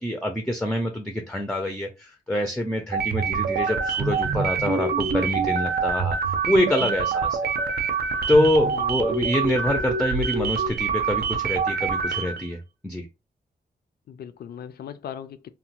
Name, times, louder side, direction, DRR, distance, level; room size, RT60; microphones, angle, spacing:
voice 1, 0.0-7.4 8.3-13.1, left 1 dB, 5° left, 0.4 m, -25 dB
sound 1, 2.9-12.5, right 5 dB, 80° right, 0.5 m, -25 dB
voice 2, 8.7-9.1 14.1-15.5, left 9 dB, 75° left, 0.4 m, -39 dB
2.8 x 2.1 x 2.8 m
wide cardioid pair, 175°, 16 cm